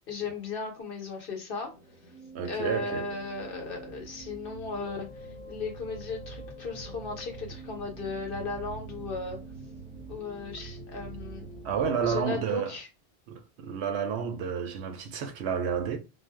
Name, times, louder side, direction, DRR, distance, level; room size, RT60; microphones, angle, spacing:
voice 1, 0.1-1.7 2.4-9.4 10.1-11.5 12.0-12.9, left 4 dB, 55° left, 1.0 m, -36 dB
sound 1, 1.6-12.2, right 3 dB, 30° right, 0.7 m, -44 dB
voice 2, 2.3-3.1 11.6-12.7 13.3-16.0, right 7 dB, 80° right, 0.8 m, -30 dB
2.5 x 2.0 x 3.3 m
omnidirectional pair, 1.1 m